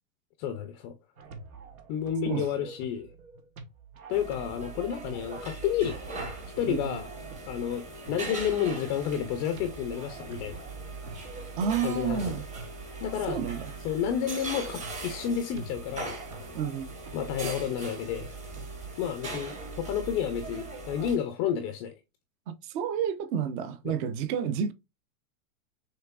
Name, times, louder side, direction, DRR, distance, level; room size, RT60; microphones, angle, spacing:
voice 1, 0.4-0.9 1.9-3.1 4.1-6.0 6.6-7.1 7.5-10.7 11.8-12.4 13.0-13.4 13.8-16.2 17.1-18.4 19.0-21.9 23.8-24.0, left 9 dB, 25° left, 0.4 m, -30 dB
sound 1, 1.2-19.1, right 3 dB, 80° right, 1.2 m, -47 dB
sound 2, 4.1-21.2, right 3 dB, 15° right, 0.9 m, -40 dB
voice 2, 6.7-7.0 11.6-12.4 13.3-13.7 16.5-16.9 22.5-24.7, right 7 dB, 40° right, 0.6 m, -30 dB
5.8 x 3.3 x 2.3 m
supercardioid pair, 140°, 41 cm